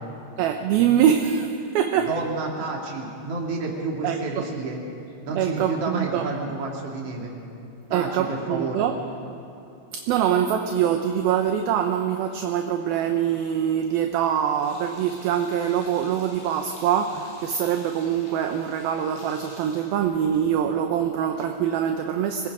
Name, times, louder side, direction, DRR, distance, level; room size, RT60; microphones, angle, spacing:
voice 1, 0.4-2.2 4.0-4.5 5.3-6.3 7.9-9.0 9.9-22.5, right 9 dB, 75° right, 5 dB, 2.5 m, -24 dB
voice 2, 2.0-4.8 5.2-7.3 7.9-8.8, right 3 dB, 40° right, -1 dB, 3.2 m, -30 dB
Sink (filling or washing), 14.3-20.7, left 2 dB, 75° left, 6.9 m, -49 dB
26.0 x 21.0 x 5.0 m, 2.8 s
omnidirectional pair, 4.7 m